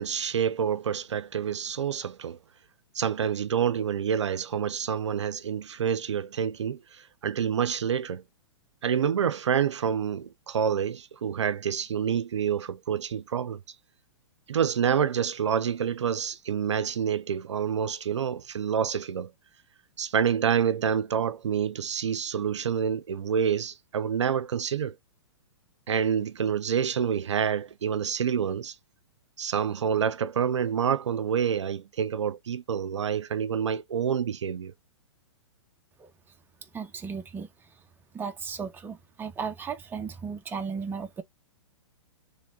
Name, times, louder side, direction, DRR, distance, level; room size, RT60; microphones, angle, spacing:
voice 1, 0.0-2.4 2.9-8.2 8.8-13.6 14.5-19.3 20.0-24.9 25.9-28.7 29.4-34.7, right 8 dB, 75° right, 0.5 m, -27 dB
voice 2, 36.7-37.5 38.1-41.2, right 5 dB, 15° right, 1.0 m, -35 dB
3.5 x 3.5 x 3.7 m
hypercardioid pair, 115°, 15 cm